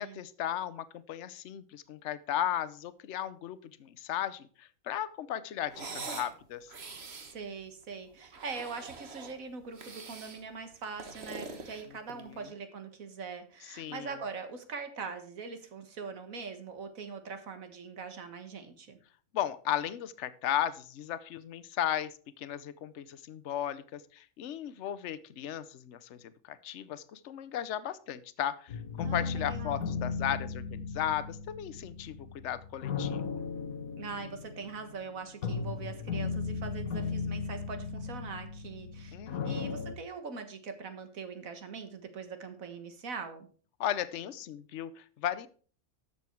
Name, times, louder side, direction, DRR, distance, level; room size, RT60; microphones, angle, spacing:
voice 1, 0.0-6.7 12.1-12.5 13.7-14.2 19.3-33.2 39.1-39.8 43.8-45.5, left 10 dB, 60° left, 15 dB, 1.0 m, -36 dB
sound 1, 5.7-6.3 6.7-7.4 8.2-9.4 9.7-10.4 10.8-12.4, right 4 dB, 50° right, 1.5 m, -43 dB
voice 2, 7.3-19.0 29.0-30.0 34.0-39.2 39.4-43.5, right 5 dB, 75° right, 8 dB, 1.9 m, -42 dB
sound 2, 28.7-39.9, left 5 dB, 90° left, 1.5 m, -36 dB
12.5 x 7.1 x 4.5 m, 0.42 s
omnidirectional pair, 1.5 m